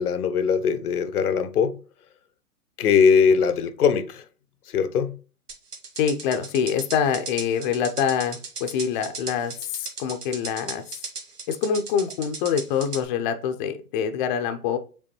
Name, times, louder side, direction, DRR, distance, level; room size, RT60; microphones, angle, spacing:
voice 1, 0.0-1.8 2.8-4.2 4.7-5.2, left 6 dB, 80° left, 0.7 m, -21 dB
sound 1, 5.5-13.0, right 4 dB, 90° right, 1.5 m, -36 dB
voice 2, 6.0-10.8 11.5-14.8, left 7 dB, 35° left, 0.5 m, -25 dB
5.3 x 3.3 x 2.9 m
hypercardioid pair, 120°, 45 cm